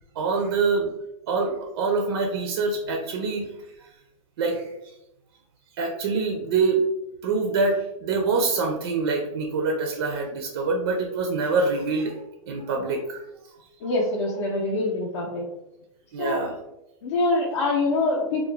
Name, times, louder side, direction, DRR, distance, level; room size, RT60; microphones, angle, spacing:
voice 1, 0.2-0.9 1.3-3.5 4.4-4.6 5.8-6.8 7.2-12.2 12.5-13.2 16.1-16.6 17.5-17.7, right 4 dB, 45° right, 2 dB, 0.4 m, -25 dB
voice 2, 13.8-15.4 16.2-16.4 17.0-18.5, left 2 dB, 55° left, -2 dB, 0.5 m, -24 dB
2.4 x 2.0 x 3.0 m, 0.87 s
hypercardioid pair, 160°, 18 cm